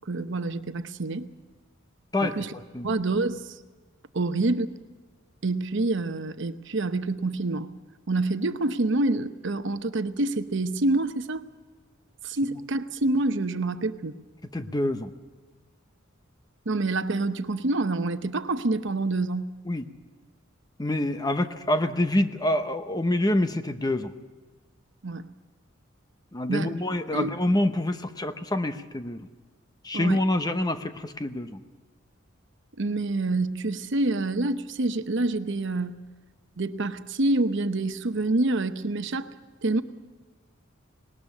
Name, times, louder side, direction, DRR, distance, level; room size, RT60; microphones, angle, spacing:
voice 1, 0.1-1.3 2.2-2.5 2.8-3.6 4.1-4.7 5.4-7.7 8.1-11.4 12.2-14.1 16.7-19.5 25.0-25.2 26.5-26.7 27.1-27.3 29.9-30.2 32.8-35.9 36.6-39.3 39.6-39.8, right 2 dB, 65° right, 10 dB, 0.9 m, -27 dB
voice 2, 2.1-2.9 14.5-15.1 19.7-19.9 20.8-24.1 26.3-29.3 29.8-31.6, left 1 dB, 20° left, 9 dB, 0.9 m, -26 dB
19.5 x 19.0 x 7.3 m, 1.3 s
head